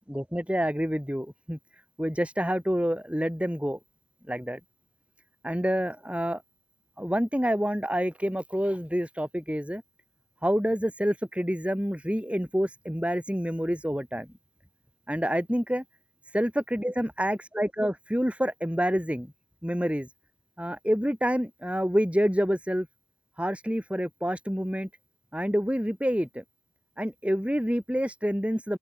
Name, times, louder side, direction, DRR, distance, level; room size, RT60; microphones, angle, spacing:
voice 1, 0.1-1.6 2.0-3.8 4.3-4.6 5.4-6.4 7.0-9.8 10.4-14.3 15.1-15.8 16.3-19.3 19.6-20.1 20.6-22.9 23.4-24.9 25.3-26.4 27.0-28.8, equal, 5° right, 5.5 m, -27 dB
open air
head